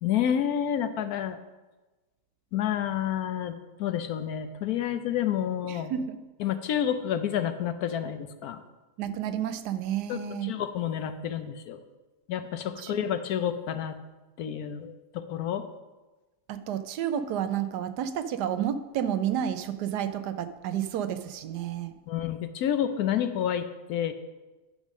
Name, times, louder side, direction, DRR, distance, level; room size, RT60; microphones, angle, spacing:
voice 1, 0.0-1.4 2.5-5.9 6.4-8.6 10.1-11.8 12.3-14.0 14.4-15.7 22.1-24.1, left 9 dB, 70° left, 10 dB, 1.1 m, -29 dB
voice 2, 5.7-6.2 9.0-10.5 12.8-13.0 16.5-21.9, right 9 dB, 90° right, 11 dB, 1.3 m, -31 dB
10.0 x 5.1 x 6.3 m, 1.2 s
omnidirectional pair, 1.7 m